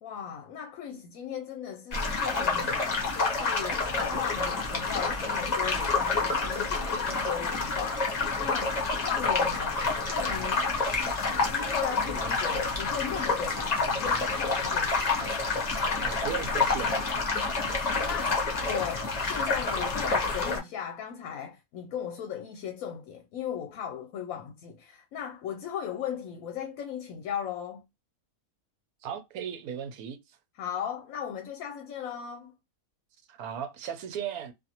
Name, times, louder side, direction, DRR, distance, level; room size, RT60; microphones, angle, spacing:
voice 1, 0.0-10.7 10.9-11.2 11.5-15.6 18.0-27.8 30.5-32.5, left 8 dB, 70° left, 0.9 m, -37 dB
sound 1, 1.9-20.6, left 3 dB, 40° left, 0.7 m, -28 dB
voice 2, 16.0-17.1 29.0-30.2 33.3-34.5, right 8 dB, 80° right, 1.1 m, -36 dB
2.5 x 2.5 x 2.8 m
omnidirectional pair, 1.6 m